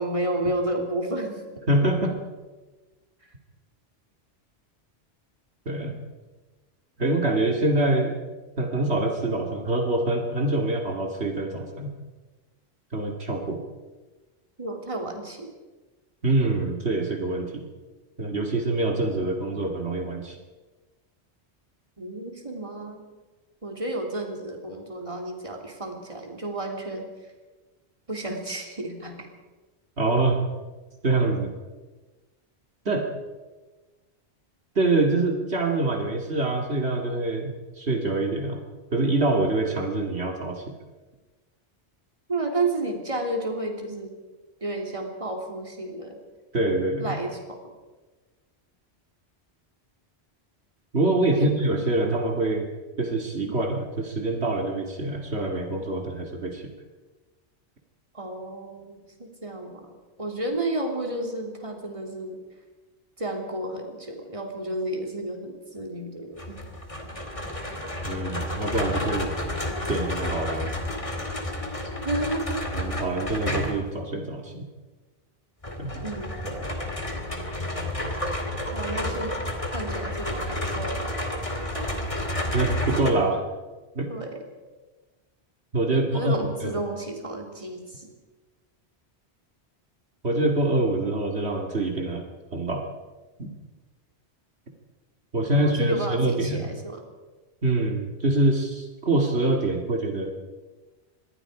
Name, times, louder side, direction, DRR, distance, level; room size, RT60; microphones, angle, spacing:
voice 1, 0.0-1.4 14.6-15.5 22.0-23.1 23.6-27.0 28.1-29.3 42.3-44.1 44.6-46.2 47.0-47.6 51.3-51.5 58.1-62.4 63.2-66.6 72.0-72.6 76.0-76.7 78.7-79.4 79.7-81.1 84.1-84.4 85.9-88.1 95.5-97.0, right 1 dB, 30° right, 2 dB, 3.3 m, -31 dB
voice 2, 1.7-2.2 5.7-6.0 7.0-8.2 8.6-11.9 12.9-13.6 16.2-17.6 18.2-20.4 30.0-30.4 31.0-31.5 32.9-33.1 34.8-38.6 38.9-40.6 46.5-47.2 50.9-52.7 53.0-56.6 68.0-69.3 69.9-70.8 72.7-74.6 75.8-76.0 82.5-83.4 83.9-84.1 85.7-86.4 86.6-86.8 90.2-92.2 92.5-92.8 93.4-93.5 95.3-96.7 97.6-100.3, right 2 dB, 70° right, 2 dB, 2.5 m, -25 dB
sound 1, 66.4-73.9 75.6-83.1, left 1 dB, 30° left, 2.7 m, -30 dB
26.0 x 21.5 x 5.0 m, 1.2 s
omnidirectional pair, 1.1 m